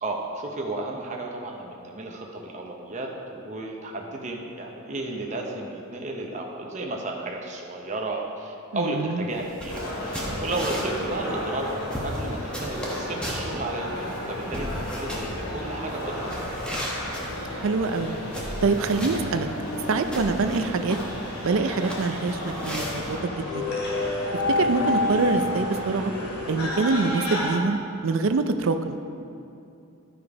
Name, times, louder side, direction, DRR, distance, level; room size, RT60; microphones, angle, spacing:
voice 1, 0.0-11.7 12.0-16.7 20.4-20.6, right 2 dB, 30° right, 0 dB, 0.7 m, -33 dB
voice 2, 8.7-9.2 17.5-18.1 18.6-19.5 19.9-21.0 21.4-23.6 24.6-26.1 26.5-27.8 28.0-29.0, right 3 dB, 65° right, 8 dB, 0.4 m, -25 dB
sound 1, 9.3-23.2, equal, 5° left, 1.0 m, -37 dB
sound 2, 9.7-27.5, left 1 dB, 90° left, 2.2 m, -31 dB
11.5 x 5.2 x 4.8 m, 2.7 s
head